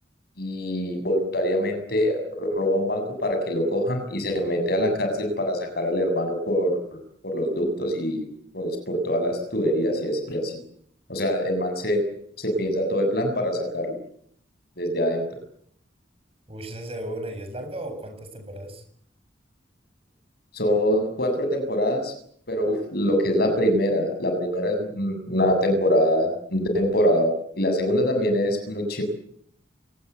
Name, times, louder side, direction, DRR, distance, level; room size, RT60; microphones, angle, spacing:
voice 1, 0.4-7.0 7.2-8.2 8.5-10.5 11.1-12.0 12.4-13.9 14.8-15.2 20.5-22.1 22.5-29.0, equal, 55° left, 6 dB, 7.5 m, -24 dB
voice 2, 16.5-18.8, right 1 dB, 30° right, 7 dB, 7.3 m, -35 dB
29.0 x 19.5 x 8.3 m, 0.65 s
head